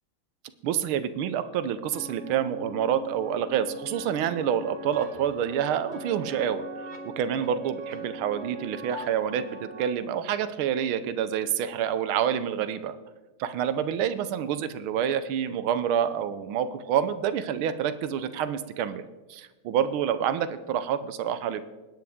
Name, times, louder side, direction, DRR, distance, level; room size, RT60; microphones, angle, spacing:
voice 1, 0.6-6.6 7.0-13.0 13.4-21.6, right 9 dB, 85° right, 12 dB, 1.5 m, -28 dB
sound 1, 1.9-9.9, right 1 dB, 25° right, 1.5 m, -40 dB
20.5 x 9.5 x 3.5 m, 1.2 s
omnidirectional pair, 2.3 m